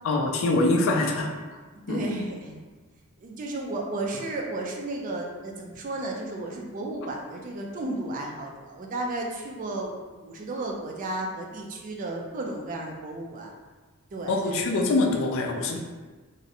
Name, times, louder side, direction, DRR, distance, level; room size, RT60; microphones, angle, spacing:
voice 1, 0.0-1.3 1.9-2.1 14.3-15.8, left 2 dB, 65° left, 1 dB, 0.3 m, -24 dB
voice 2, 1.9-2.6 3.2-13.5 14.1-14.6, right 2 dB, 35° right, 0 dB, 0.3 m, -33 dB
2.5 x 2.0 x 2.6 m, 1.3 s
head